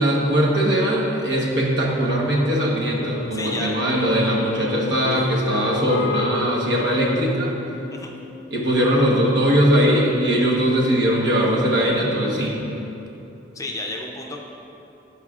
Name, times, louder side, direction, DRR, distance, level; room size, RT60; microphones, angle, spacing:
voice 1, 0.0-7.5 8.5-12.6, equal, 65° right, -3 dB, 1.2 m, -20 dB
Wind instrument woodwind instrument, 2.9-9.6, left 3 dB, 75° left, 0.4 m, -34 dB
voice 2, 3.3-3.7 7.9-8.1 13.6-14.4, left 2 dB, 15° left, 0 dB, 0.5 m, -31 dB
13.5 x 4.9 x 2.4 m, 3.0 s
head